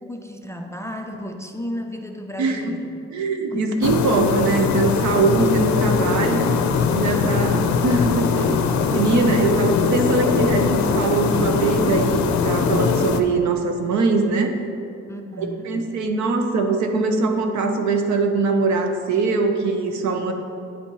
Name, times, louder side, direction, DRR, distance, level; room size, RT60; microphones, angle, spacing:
voice 1, 0.0-2.9 3.5-3.7 15.1-15.7, left 1 dB, 10° left, 4 dB, 0.3 m, -34 dB
voice 2, 3.1-6.6 6.9-14.5 15.4-20.3, right 3 dB, 70° right, 5 dB, 0.7 m, -22 dB
sound 1, 3.8-13.2, left 5 dB, 65° left, 0.5 m, -21 dB
9.3 x 4.2 x 3.0 m, 2.5 s
cardioid pair, 90°, 30 cm